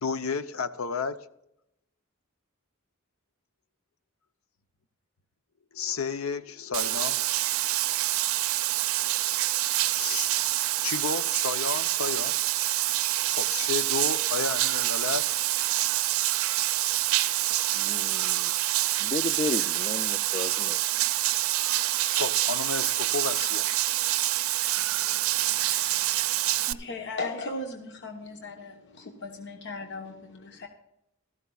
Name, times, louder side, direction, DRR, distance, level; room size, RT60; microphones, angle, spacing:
voice 1, 0.0-1.3 5.7-7.2 10.0-10.3 10.8-12.3 13.3-15.3 22.1-23.7, left 5 dB, 90° left, 0.7 m, -32 dB
Bathtub (filling or washing), 6.7-26.7, right 15 dB, 90° right, 0.5 m, -26 dB
voice 2, 15.7-16.0 17.7-18.6 19.0-20.8, left 3 dB, 25° left, 0.3 m, -34 dB
voice 3, 24.8-30.7, left 2 dB, 55° left, 1.1 m, -39 dB
16.5 x 13.5 x 2.4 m
head